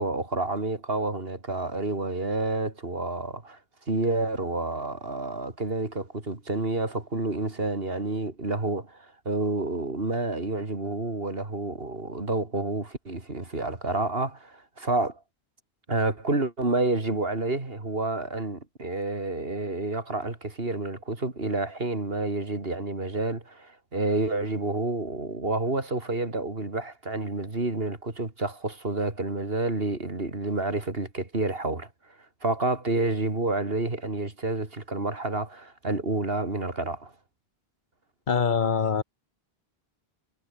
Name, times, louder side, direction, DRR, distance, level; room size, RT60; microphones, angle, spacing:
voice 1, 0.0-3.6 3.9-15.2 15.9-31.9 32.4-37.1, right 2 dB, 65° right, 3.6 m, -29 dB
voice 2, 38.3-39.0, left 6 dB, 50° left, 1.2 m, -24 dB
omnidirectional pair, 1.0 m